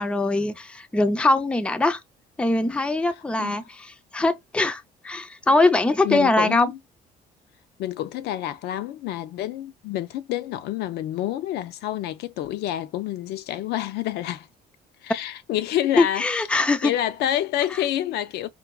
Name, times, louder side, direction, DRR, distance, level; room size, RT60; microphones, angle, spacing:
voice 1, 0.0-2.0 2.4-6.7 16.0-16.9, left 2 dB, 5° left, 0.3 m, -22 dB
voice 2, 6.0-6.8 7.8-14.5 15.0-16.3 16.5-18.5, left 12 dB, 75° left, 0.4 m, -28 dB
4.6 x 2.2 x 2.3 m
cardioid pair, 110°, 17 cm